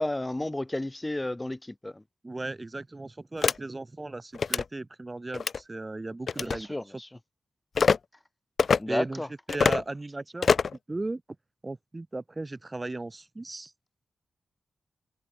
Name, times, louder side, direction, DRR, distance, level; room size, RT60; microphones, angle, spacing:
voice 1, 0.0-2.0 6.4-7.1 8.8-9.3, left 1 dB, 15° left, 2.2 m, -32 dB
voice 2, 2.2-7.0 8.9-10.6 10.9-11.2 11.6-13.7, right 2 dB, 25° right, 3.7 m, -36 dB
sound 1, 3.4-3.6 4.3-4.6 5.3-5.6 6.3-6.6 7.7-8.0 8.6-8.8 9.5-9.8 10.4-10.8, left 5 dB, 60° left, 0.7 m, -23 dB
cardioid pair, 85°, 0 cm